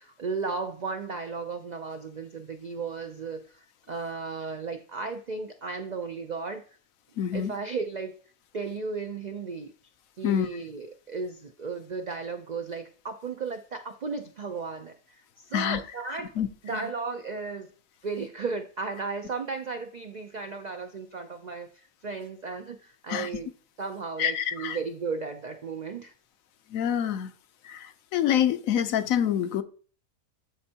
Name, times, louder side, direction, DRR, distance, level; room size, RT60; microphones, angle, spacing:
voice 1, 0.0-6.6 7.3-8.2 8.5-9.7 10.2-16.3 16.6-17.7 18.0-23.5 23.8-26.1, right 4 dB, 75° right, 0.4 m, -35 dB
voice 2, 7.2-7.5 10.2-10.5 15.5-15.8 16.4-16.5 23.1-23.3 24.2-24.8 26.7-27.3 27.6-29.6, left 9 dB, 75° left, 1.1 m, -26 dB
13.0 x 4.3 x 2.8 m
omnidirectional pair, 1.5 m